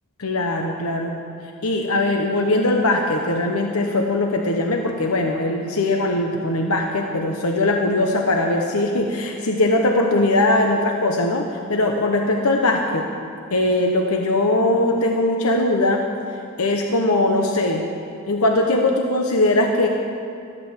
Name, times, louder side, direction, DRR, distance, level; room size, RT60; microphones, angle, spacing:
voice 1, 0.2-1.2 1.6-13.1 13.5-16.0 16.6-17.9 18.3-19.9, left 2 dB, 80° left, 2 dB, 1.1 m, -20 dB
14.0 x 11.5 x 7.4 m, 2.6 s
head